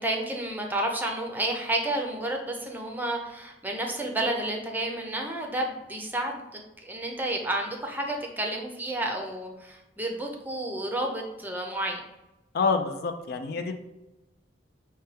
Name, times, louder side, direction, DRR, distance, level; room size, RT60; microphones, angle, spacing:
voice 1, 0.0-12.0, right 1 dB, 10° right, 2 dB, 0.6 m, -31 dB
voice 2, 12.5-13.7, left 4 dB, 55° left, 7 dB, 0.4 m, -27 dB
5.6 x 2.2 x 3.2 m, 0.99 s
head